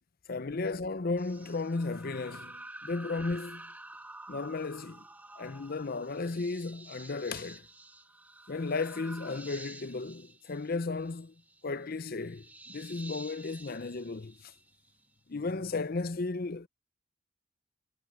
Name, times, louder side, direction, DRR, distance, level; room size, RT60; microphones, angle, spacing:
voice 1, 0.3-3.7 4.3-5.0 5.4-7.7 8.5-11.3 11.6-14.5 15.3-16.7, left 3 dB, 50° left, 0.7 m, -34 dB
sound 1, 1.2-15.0, right 2 dB, 10° right, 1.6 m, -49 dB
head